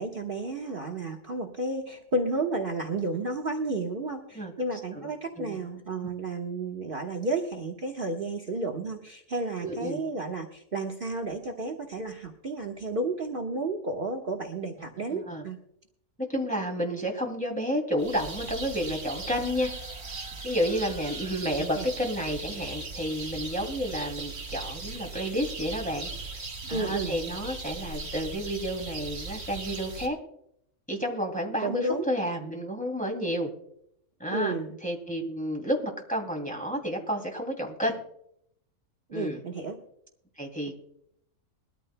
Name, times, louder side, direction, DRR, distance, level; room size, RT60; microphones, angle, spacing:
voice 1, 0.0-15.6 21.6-21.8 26.7-27.1 31.6-32.0 34.3-34.8 39.1-39.8, right 2 dB, 40° right, 3 dB, 1.3 m, -32 dB
voice 2, 4.9-5.6 9.6-10.0 15.0-15.4 16.3-19.7 20.4-30.2 30.9-33.5 34.2-34.5 34.8-38.0 39.1-39.4 40.4-40.7, equal, 5° left, 1 dB, 2.6 m, -31 dB
sound 1, 18.0-30.1, right 3 dB, 65° right, 2.5 m, -38 dB
21.5 x 13.5 x 2.2 m, 0.74 s
omnidirectional pair, 1.5 m